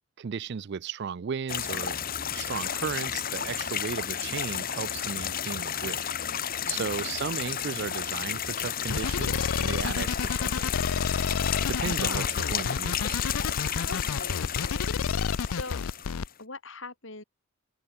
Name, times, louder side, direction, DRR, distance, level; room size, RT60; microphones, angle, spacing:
voice 1, 0.2-2.0 2.3-6.0 6.7-10.9 11.7-12.2 12.5-13.2, right 6 dB, 50° right, 0.4 m, -35 dB
sound 1, 1.5-16.3, left 9 dB, 40° left, 1.2 m, -32 dB
sound 2, 8.9-16.3, left 6 dB, 80° left, 0.5 m, -29 dB
voice 2, 11.8-12.3 13.8-15.9 16.4-17.2, left 3 dB, 60° left, 4.3 m, -42 dB
head